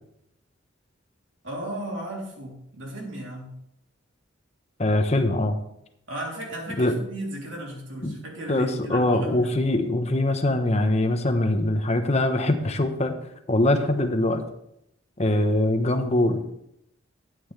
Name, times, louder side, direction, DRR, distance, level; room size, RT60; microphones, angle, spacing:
voice 1, 1.4-3.6 6.1-9.5, right 1 dB, 65° right, -2 dB, 3.3 m, -35 dB
voice 2, 4.8-5.6 6.8-6.9 8.0-8.2 8.5-13.2 13.5-14.4 15.2-16.4, left 1 dB, 35° left, 7 dB, 1.0 m, -23 dB
12.5 x 9.2 x 3.3 m, 0.78 s
head